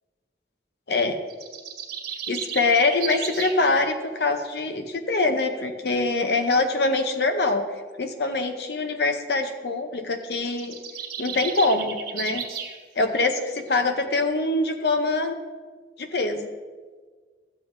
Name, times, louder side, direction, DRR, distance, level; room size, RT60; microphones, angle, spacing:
sound 1, 1.3-3.6 10.2-12.8, right 7 dB, 55° right, 1.7 m, -34 dB
voice 1, 2.3-7.6 8.0-10.8 11.2-12.4 13.0-15.4 16.0-16.5, left 3 dB, 60° left, 6 dB, 0.6 m, -24 dB
13.5 x 7.9 x 2.6 m, 1.5 s
head